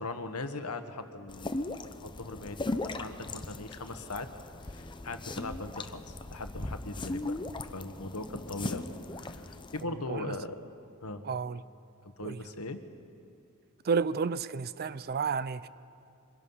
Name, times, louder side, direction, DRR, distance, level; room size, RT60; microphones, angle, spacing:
voice 1, 0.0-4.3 4.6-7.4 7.7-8.9 9.1-10.6 11.0-11.2 12.2-12.8, left 2 dB, 85° left, 1.4 m, -40 dB
sound 1, 1.3-9.8, left 2 dB, 20° left, 0.6 m, -38 dB
voice 2, 9.8-10.4 11.2-11.6 12.2-12.4 13.8-15.7, right 5 dB, 45° right, 0.5 m, -31 dB
25.0 x 22.0 x 5.6 m
head